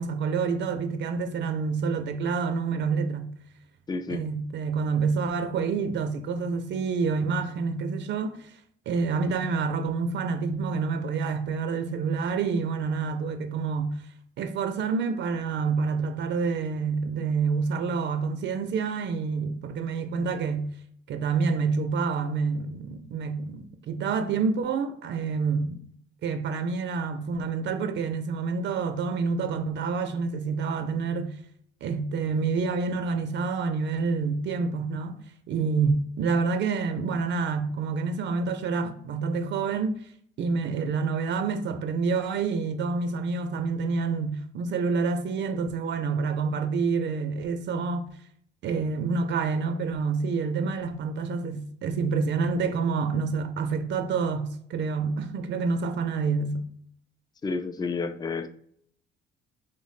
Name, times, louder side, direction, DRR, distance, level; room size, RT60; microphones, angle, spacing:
voice 1, 0.0-3.3 4.1-8.6 8.9-13.9 14.4-20.7 21.1-25.8 26.2-31.4 31.8-35.2 35.5-40.1 40.4-48.1 48.6-56.7, right 4 dB, 65° right, 0.4 m, -28 dB
voice 2, 3.9-4.2 57.4-58.5, left 4 dB, 20° left, 0.3 m, -30 dB
3.1 x 2.0 x 4.0 m
cardioid pair, 90°, 20 cm